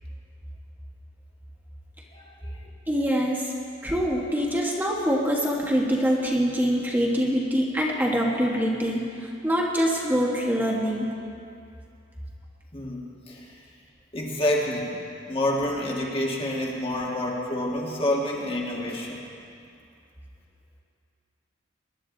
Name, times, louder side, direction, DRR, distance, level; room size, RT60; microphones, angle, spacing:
voice 1, 2.1-2.7 12.7-13.5 14.1-14.9 15.3-19.2, left 1 dB, 30° left, -2 dB, 1.6 m, -28 dB
voice 2, 2.9-3.5 3.8-11.1, equal, 10° right, -3 dB, 1.4 m, -24 dB
20.5 x 11.5 x 3.9 m, 2.5 s
head